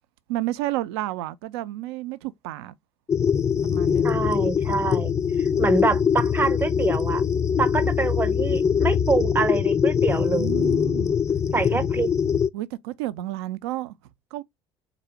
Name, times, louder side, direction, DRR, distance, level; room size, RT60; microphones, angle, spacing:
voice 1, 0.3-2.7 3.6-4.2 10.1-11.2 11.7-11.9 12.5-13.9 14.3-14.4, right 15 dB, 70° right, 0.4 m, -31 dB
sound 1, 3.1-12.5, left 7 dB, 20° left, 0.4 m, -22 dB
voice 2, 4.0-5.1 5.6-7.2 7.6-10.7 11.5-12.1, right 4 dB, 15° right, 0.7 m, -26 dB
3.9 x 2.6 x 4.4 m
figure-of-eight pair, 55°, 14 cm